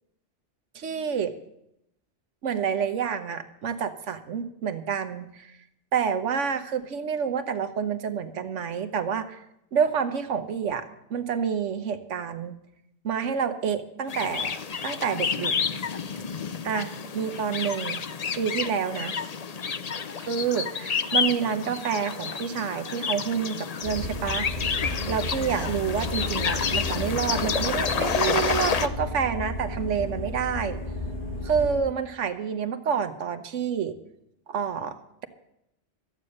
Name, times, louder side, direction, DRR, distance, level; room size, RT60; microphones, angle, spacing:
voice 1, 0.7-1.3 2.4-5.5 5.9-9.4 9.7-12.5 13.0-14.6 14.8-15.5 16.6-16.9 17.1-18.0 18.4-19.1 20.2-30.8 31.4-33.9 34.5-35.0, right 7 dB, 85° right, 8 dB, 1.3 m, -28 dB
sound 1, 14.1-28.9, left 6 dB, 45° left, 0.6 m, -29 dB
sound 2, 23.8-31.8, left 1 dB, 65° left, 6.2 m, -33 dB
14.0 x 8.9 x 6.4 m, 0.80 s
omnidirectional pair, 1.2 m